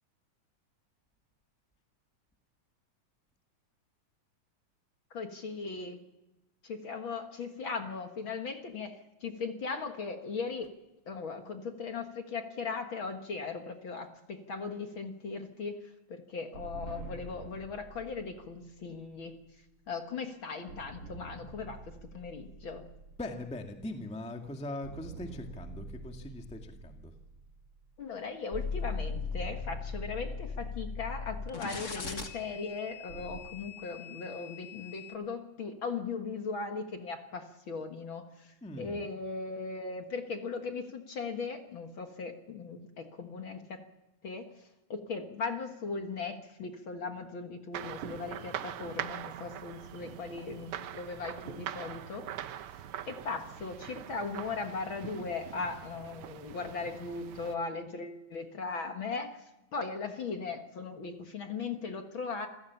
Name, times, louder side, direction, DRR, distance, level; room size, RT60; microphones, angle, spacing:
voice 1, 5.1-6.0 6.6-10.7 11.1-15.8 16.1-19.4 19.9-22.9 28.0-43.8 44.2-44.4 44.9-52.2 52.7-59.4 59.7-62.5, left 4 dB, 50° left, 5 dB, 1.9 m, -38 dB
sound 1, 16.5-20.1 20.7-24.5 24.8-28.4 29.0-33.4, right 3 dB, 50° right, 3.2 m, -49 dB
voice 2, 23.2-27.1 38.6-39.0, left 1 dB, 5° left, 4 dB, 1.2 m, -41 dB
sound 2, 28.5-35.1, left 5 dB, 35° left, 1.5 m, -39 dB
sound 3, 47.7-57.6, right 10 dB, 70° right, 1.4 m, -43 dB
27.5 x 16.0 x 7.0 m, 0.98 s
omnidirectional pair, 3.4 m